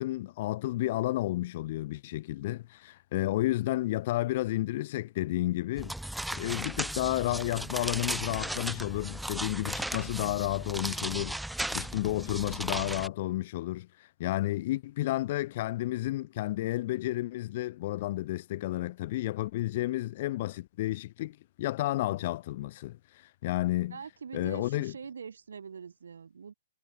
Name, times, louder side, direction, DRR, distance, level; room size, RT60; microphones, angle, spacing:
voice 1, 0.0-5.9 6.3-11.4 11.7-13.9 14.2-24.0 24.3-24.9, left 16 dB, 50° left, 0.6 m, -31 dB
sound 1, 5.8-13.1, right 1 dB, ahead, 0.4 m, -36 dB
voice 2, 23.9-26.5, right 6 dB, 80° right, 7.9 m, -43 dB
hypercardioid pair, 135°, 0 cm